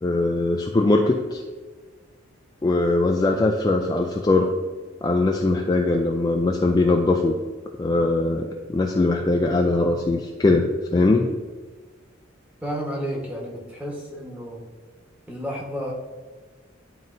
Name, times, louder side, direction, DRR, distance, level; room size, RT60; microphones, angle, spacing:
voice 1, 0.0-1.4 2.6-4.5 5.0-7.4 7.8-11.3, left 2 dB, 20° left, 2 dB, 0.3 m, -21 dB
voice 2, 12.6-14.6 15.3-15.9, equal, 5° right, -2 dB, 1.2 m, -31 dB
10.5 x 3.9 x 2.6 m, 1.4 s
head